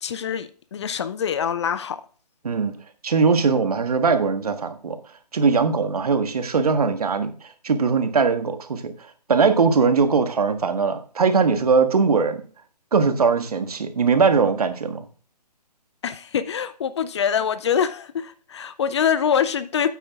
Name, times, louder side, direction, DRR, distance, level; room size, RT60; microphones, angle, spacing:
voice 1, 0.0-2.0 16.0-19.9, left 8 dB, 40° left, 0.7 m, -24 dB
voice 2, 3.0-5.0 5.3-7.3 7.6-8.9 9.3-12.4 12.9-15.0, right 5 dB, 60° right, 1.6 m, -20 dB
9.2 x 8.3 x 3.6 m
figure-of-eight pair, 145°, 21 cm